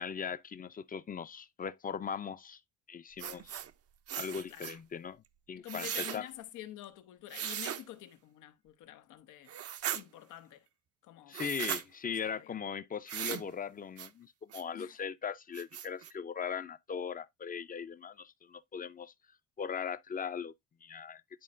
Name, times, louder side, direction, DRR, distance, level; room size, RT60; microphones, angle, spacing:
voice 1, 0.0-2.6 2.9-3.6 4.2-5.2 5.5-5.9 6.1-6.2 11.3-19.1 19.6-20.5 20.8-21.2, left 7 dB, 30° left, 0.5 m, -39 dB
sound 1, 3.2-3.7 4.1-4.8 5.7-6.2 7.3-7.8 9.5-10.0 11.3-11.8 13.1-13.5 14.0-14.1 14.5-14.6 15.1-15.2 15.5-16.1, right 10 dB, 50° right, 0.6 m, -38 dB
voice 2, 5.6-9.6 9.9-10.7 11.0-11.4 12.1-12.6 14.7-15.0, left 13 dB, 90° left, 0.8 m, -48 dB
10.5 x 4.2 x 2.4 m
cardioid pair, 90°, 30 cm